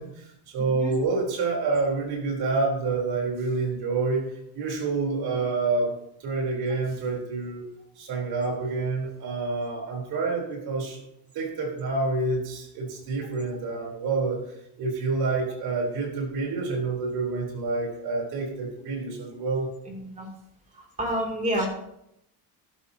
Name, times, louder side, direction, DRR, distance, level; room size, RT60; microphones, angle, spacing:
voice 1, 0.0-5.9 6.2-7.6 8.0-11.0 11.3-14.4 14.8-19.7, right 3 dB, 65° right, 0 dB, 3.9 m, -28 dB
voice 2, 21.0-21.7, right 1 dB, 20° right, 0 dB, 2.8 m, -27 dB
12.5 x 11.5 x 2.9 m, 0.79 s
cardioid pair, 150°, 41 cm